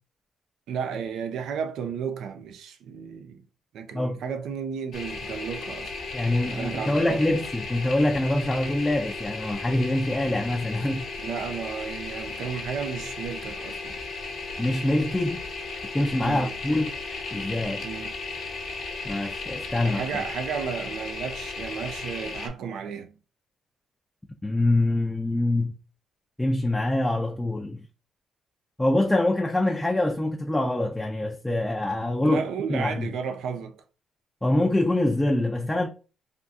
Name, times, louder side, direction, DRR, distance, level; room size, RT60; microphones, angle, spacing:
voice 1, 0.7-3.4 3.7-6.0 6.3-7.2 11.2-14.0 16.2-16.5 17.8-18.1 19.8-23.1 32.2-33.8, right 6 dB, 75° right, 0.5 m, -33 dB
sound 1, 4.9-22.5, left 3 dB, 65° left, 1.0 m, -35 dB
voice 2, 6.1-11.1 14.6-15.4 15.9-17.0 17.3-17.8 19.0-20.0 24.4-25.8 26.4-27.8 28.8-32.4 32.7-33.1 34.4-35.9, left 1 dB, 10° left, 0.4 m, -25 dB
3.5 x 2.4 x 2.6 m
cardioid pair, 90°, 0 cm